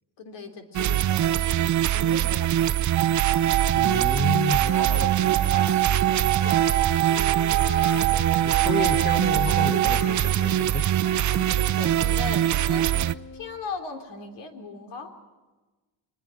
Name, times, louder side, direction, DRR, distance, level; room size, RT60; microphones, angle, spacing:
voice 1, 0.2-1.5 1.9-2.8 4.7-6.8 11.5-12.9 13.3-15.1, left 3 dB, 80° left, 6 dB, 3.5 m, -38 dB
sound 1, 0.7-13.1, right 12 dB, 45° right, 0.7 m, -23 dB
sound 2, 3.0-10.0, right 14 dB, 85° right, 1.1 m, -26 dB
voice 2, 3.7-4.7 8.4-10.9, left 4 dB, 25° left, 12 dB, 0.9 m, -31 dB
Wind instrument woodwind instrument, 4.6-13.6, left 4 dB, 45° left, 1.8 m, -41 dB
22.5 x 21.5 x 7.7 m, 1.2 s
cardioid pair, 130°, 42 cm